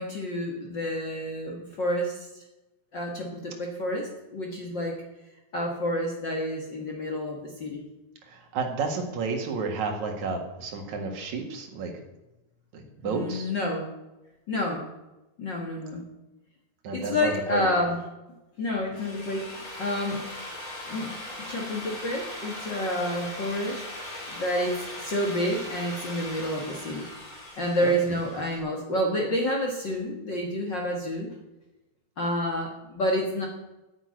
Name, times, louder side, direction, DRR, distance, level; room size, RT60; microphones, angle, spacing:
voice 1, 0.0-2.4 2.9-5.0 5.5-7.8 13.0-13.9 14.5-14.9 15.4-16.0 16.9-18.0 18.6-20.2 20.9-23.8 24.3-27.1 27.6-31.3 32.2-33.4, left 1 dB, 55° left, 0 dB, 1.2 m, -29 dB
voice 2, 8.3-11.9 12.7-13.5 16.8-17.7 27.8-27.9, right 4 dB, 55° right, 3 dB, 2.7 m, -31 dB
Drill, 18.8-28.6, left 1 dB, 20° left, 3.0 m, -39 dB
9.7 x 8.4 x 9.3 m, 0.99 s
omnidirectional pair, 4.8 m